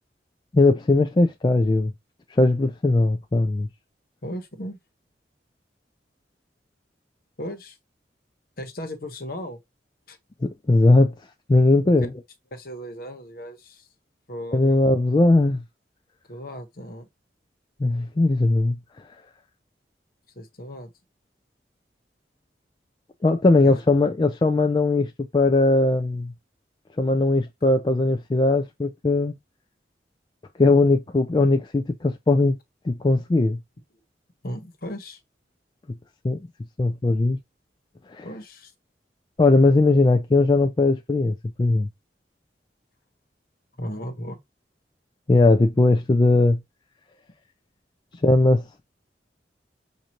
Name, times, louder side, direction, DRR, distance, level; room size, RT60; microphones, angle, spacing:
voice 1, 0.5-1.9 2.3-3.7 10.4-11.1 11.5-12.1 14.5-15.6 17.8-19.1 23.2-26.3 27.0-29.4 30.6-32.5 32.9-33.6 36.2-36.4 36.8-37.4 38.1-38.3 39.4-41.9 45.3-46.6 48.2-48.8, left 2 dB, 25° left, 0.3 m, -19 dB
voice 2, 4.2-4.8 7.4-7.8 8.6-9.6 10.1-10.2 11.8-11.9 12.5-13.8 14.3-14.8 16.3-17.1 20.4-20.9 23.6-23.8 34.4-35.2 38.2-38.7 43.8-44.4, equal, 55° left, 1.2 m, -36 dB
6.2 x 2.7 x 2.9 m
head